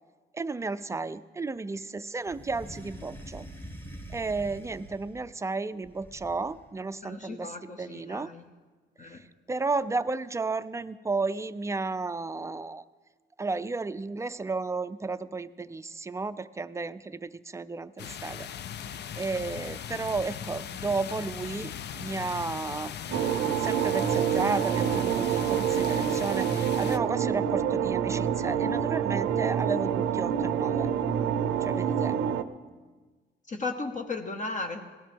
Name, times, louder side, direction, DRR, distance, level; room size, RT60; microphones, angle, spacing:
voice 1, 0.3-3.4 4.1-8.3 9.0-12.8 13.4-18.5 19.2-22.9 23.6-30.9 31.6-32.2, right 3 dB, 15° right, 13 dB, 0.4 m, -33 dB
sound 1, 2.3-5.3 5.8-6.7, equal, 10° left, 1.3 m, -45 dB
voice 2, 7.0-8.4 9.0-9.2 33.5-34.9, left 3 dB, 40° left, 5 dB, 0.9 m, -35 dB
sound 2, 18.0-27.0, left 9 dB, 60° left, 0.5 m, -39 dB
sound 3, 23.1-32.4, right 8 dB, 85° right, 0.6 m, -27 dB
17.5 x 13.5 x 3.5 m, 1.4 s
cardioid pair, 90°, 20 cm